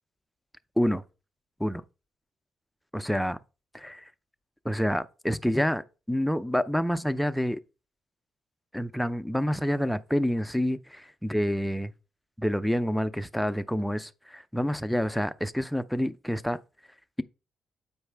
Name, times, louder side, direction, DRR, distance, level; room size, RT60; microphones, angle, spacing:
voice 1, 2.9-3.4 3.7-4.0 4.6-7.6 8.7-11.9 12.4-16.6, equal, ahead, 0.4 m, -28 dB
8.1 x 4.7 x 3.4 m
cardioid pair, 90°, 0 cm